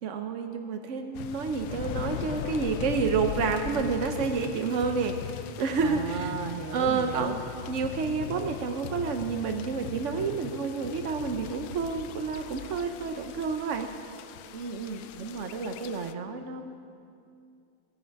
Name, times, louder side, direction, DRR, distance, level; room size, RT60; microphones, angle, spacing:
voice 1, 0.0-6.3 6.7-7.3 7.7-13.9, right 5 dB, 75° right, 5 dB, 0.7 m, -29 dB
sound 1, 1.1-16.1, left 10 dB, 75° left, 1.2 m, -39 dB
voice 2, 5.8-7.4 14.5-16.7, right 4 dB, 50° right, 6 dB, 0.9 m, -36 dB
17.0 x 15.0 x 4.7 m, 2.4 s
omnidirectional pair, 2.3 m